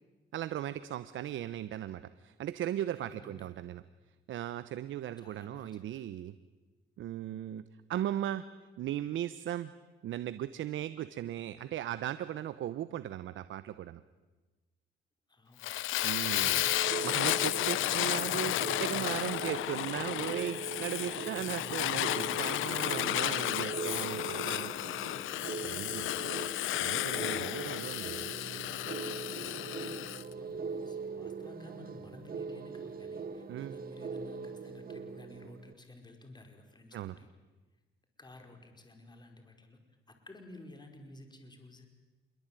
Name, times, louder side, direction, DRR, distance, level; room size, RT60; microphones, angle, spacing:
voice 1, 0.3-3.8 4.3-6.3 7.0-8.5 8.8-9.7 10.0-14.0 16.0-16.7 17.0-18.5 18.8-24.7 25.6-26.1 26.8-28.3 33.5-33.7 36.9-37.2, right 12 dB, 75° right, 13 dB, 1.0 m, -37 dB
voice 2, 3.0-3.5 5.2-6.1 15.3-19.3 29.4-37.3 38.2-39.8 40.1-41.9, left 2 dB, 20° left, 5 dB, 5.0 m, -53 dB
Fire, 15.6-30.2, left 15 dB, 85° left, 0.8 m, -33 dB
sound 1, 16.3-35.7, right 5 dB, 45° right, 1.8 m, -41 dB
27.0 x 23.0 x 9.2 m, 1.2 s
cardioid pair, 90°, 20 cm